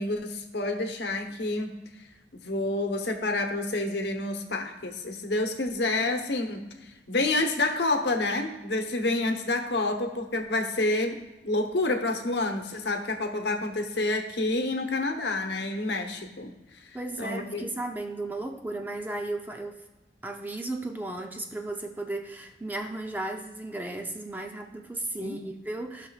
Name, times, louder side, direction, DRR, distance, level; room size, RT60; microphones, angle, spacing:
voice 1, 0.0-1.7 2.3-6.6 7.1-16.5 17.2-17.7 25.2-25.4, left 2 dB, 75° left, 4 dB, 1.0 m, -28 dB
voice 2, 16.9-19.8 20.2-26.1, right 2 dB, 10° right, 4 dB, 0.4 m, -35 dB
15.5 x 5.7 x 2.4 m, 1.1 s
head